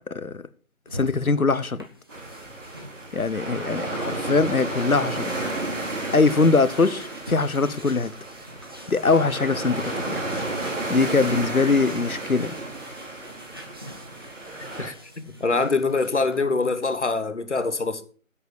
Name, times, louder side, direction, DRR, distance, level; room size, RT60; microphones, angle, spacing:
voice 1, 0.1-0.4 0.9-1.9 3.1-5.3 6.1-8.1 8.9-10.2 10.9-12.6, left 4 dB, 80° left, 1.1 m, -22 dB
sound 1, 0.9-16.8, equal, 15° right, 1.1 m, -45 dB
sound 2, 2.1-14.9, right 2 dB, 60° right, 3.0 m, -32 dB
voice 2, 14.6-18.0, left 3 dB, 55° left, 1.3 m, -25 dB
9.8 x 8.0 x 6.6 m
figure-of-eight pair, 160°, 42 cm